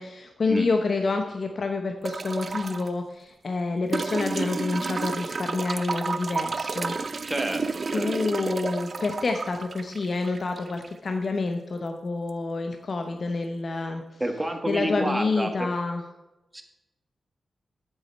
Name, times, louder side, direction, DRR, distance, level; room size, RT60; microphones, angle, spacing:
voice 1, 0.0-6.9 7.9-14.0 14.7-16.0, left 3 dB, 55° left, 5 dB, 0.8 m, -28 dB
sound 1, 2.0-2.9 3.9-10.9 12.3-12.4, right 4 dB, 50° right, 0.4 m, -31 dB
voice 2, 7.2-8.1 14.2-15.7 16.5-16.6, right 1 dB, 15° right, 5 dB, 1.3 m, -29 dB
8.2 x 7.2 x 4.4 m, 1.0 s
cardioid pair, 80°, 0 cm